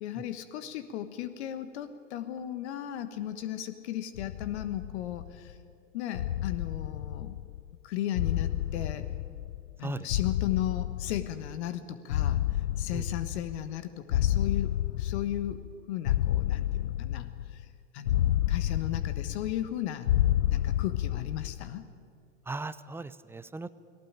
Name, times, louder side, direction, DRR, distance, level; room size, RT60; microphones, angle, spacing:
voice 1, 0.0-5.6 5.9-7.4 7.8-9.1 9.8-17.7 17.9-20.1 20.5-21.9, left 12 dB, 60° left, 11 dB, 1.3 m, -36 dB
sound 1, 4.2-5.5 6.1-7.7 8.1-9.8 10.1-11.7 12.1-13.8 14.1-15.7 16.1-17.6 18.1-19.7 20.1-21.7, left 12 dB, 85° left, 0.5 m, -30 dB
voice 2, 22.5-23.7, right 3 dB, 5° right, 15 dB, 0.5 m, -37 dB
19.0 x 17.5 x 8.8 m, 2.5 s
hypercardioid pair, 105°, 38 cm